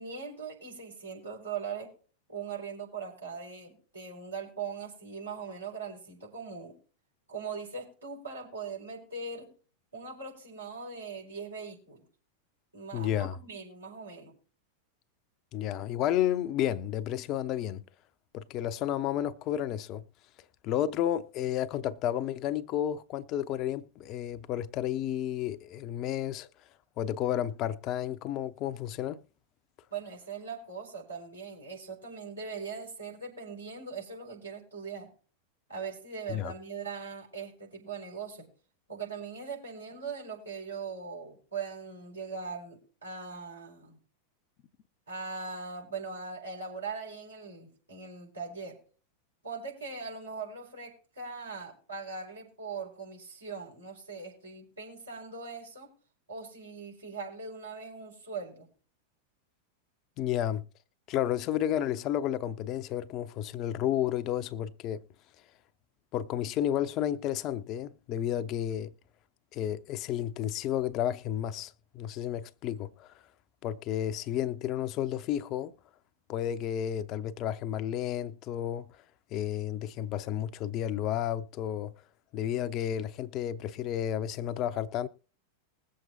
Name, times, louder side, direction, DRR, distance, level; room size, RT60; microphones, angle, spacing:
voice 1, 0.0-1.9 2.3-6.8 7.3-9.5 9.9-12.0 12.7-14.3 29.9-35.1 35.7-38.5 38.9-44.0 45.1-48.8 49.4-55.9 56.3-58.7, right 5 dB, 80° right, 5.1 m, -40 dB
voice 2, 12.9-13.4 15.5-17.8 18.3-20.0 20.6-26.5 27.0-29.2 36.3-36.5 60.2-60.6 61.1-65.0 66.1-68.9 69.5-73.1 73.6-75.7 76.3-78.9 79.3-81.9 82.3-85.1, left 11 dB, 35° left, 0.6 m, -31 dB
21.0 x 7.6 x 2.7 m
figure-of-eight pair, 90°, 0 cm